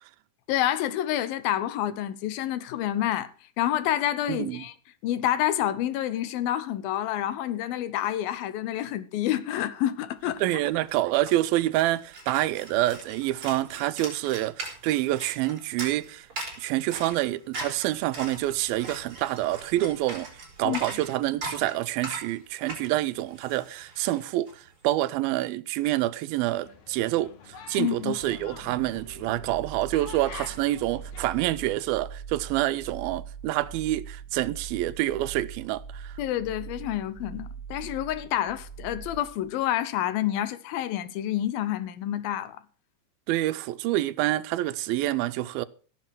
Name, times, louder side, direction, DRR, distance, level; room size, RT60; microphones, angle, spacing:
voice 1, 0.5-3.3 3.6-4.7 5.0-10.4 20.6-20.8 27.8-28.2 36.2-42.6, left 12 dB, 85° left, 2.8 m, -28 dB
voice 2, 4.3-4.6 10.4-16.3 16.6-20.3 20.6-36.2 43.3-45.7, right 15 dB, 90° right, 2.6 m, -27 dB
sound 1, 10.4-10.5 10.7-24.5, right 2 dB, 35° right, 5.2 m, -40 dB
sound 2, 26.6-31.7, left 6 dB, 60° left, 2.8 m, -47 dB
sound 3, 28.2-39.7, right 6 dB, 15° left, 0.7 m, -42 dB
16.5 x 7.9 x 6.0 m
omnidirectional pair, 4.1 m